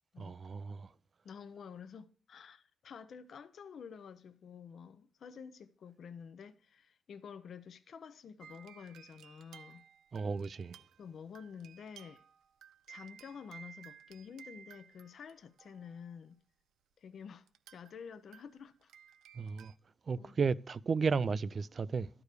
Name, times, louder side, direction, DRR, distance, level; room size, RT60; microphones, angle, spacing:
voice 1, 0.2-0.9 10.1-10.8 19.3-19.7 20.1-22.1, right 5 dB, 40° right, 0.4 m, -34 dB
voice 2, 1.2-9.8 11.0-12.2 12.9-16.4 17.0-17.5 17.7-18.9 20.2-20.4, left 6 dB, 55° left, 0.7 m, -50 dB
sound 1, 8.4-16.1 17.5-18.0 18.3-19.8, right 8 dB, 85° right, 0.6 m, -57 dB
12.0 x 4.9 x 6.6 m
cardioid pair, 120°, 0 cm